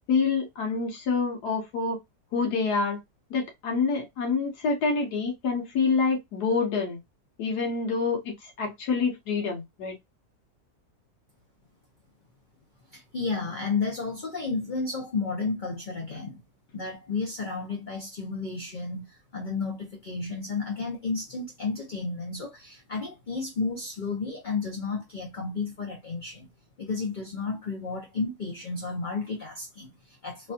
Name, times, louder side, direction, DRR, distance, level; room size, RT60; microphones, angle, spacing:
voice 1, 0.1-2.0 2.3-3.0 3.3-7.0 7.4-9.9, left 4 dB, 85° left, 1.4 m, -27 dB
voice 2, 12.9-16.4 16.7-26.5 26.8-30.5, left 4 dB, 40° left, 0.7 m, -32 dB
3.3 x 2.4 x 2.6 m
omnidirectional pair, 1.6 m